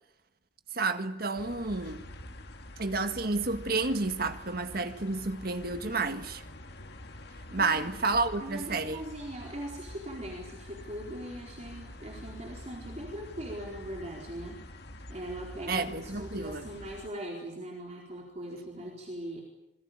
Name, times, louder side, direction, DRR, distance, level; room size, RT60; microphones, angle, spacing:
voice 1, 0.7-2.1 2.8-6.4 7.5-9.0 15.7-16.6, right 3 dB, 50° right, 1.7 m, -30 dB
sound 1, 1.4-17.1, left 1 dB, 60° left, 2.0 m, -46 dB
voice 2, 7.6-7.9 8.4-14.6 15.1-19.4, right 1 dB, 35° right, 4.4 m, -40 dB
27.0 x 21.5 x 8.9 m
head